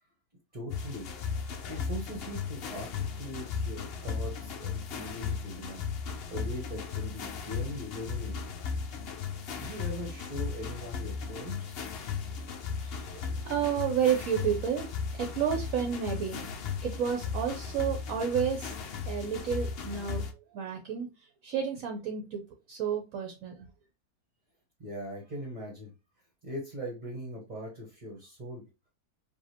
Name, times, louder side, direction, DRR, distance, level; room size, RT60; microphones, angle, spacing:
voice 1, 0.5-1.1 1.7-8.3 9.5-11.8 24.8-25.9 26.4-28.6, equal, 30° right, -3 dB, 1.2 m, -40 dB
sound 1, 0.7-20.3, left 6 dB, 60° left, 0.6 m, -36 dB
voice 2, 12.8-14.9 15.2-16.4 16.8-18.7 19.1-20.2 20.5-21.1 21.4-22.4 22.7-23.7, right 8 dB, 65° right, 4 dB, 1.1 m, -31 dB
4.9 x 2.7 x 2.8 m, 0.27 s
omnidirectional pair, 1.6 m